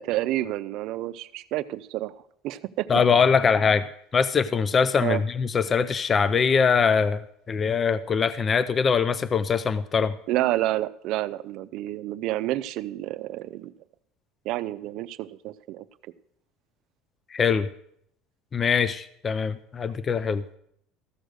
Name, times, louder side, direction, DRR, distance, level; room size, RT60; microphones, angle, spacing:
voice 1, 0.0-2.1 2.4-2.9 5.0-5.2 10.3-13.7 14.4-15.8, right 15 dB, 60° right, 14 dB, 0.5 m, -29 dB
voice 2, 2.9-10.2 17.3-17.7 18.5-20.4, left 6 dB, 25° left, 15 dB, 0.4 m, -23 dB
14.0 x 6.6 x 6.3 m, 0.72 s
cardioid pair, 140°, 0 cm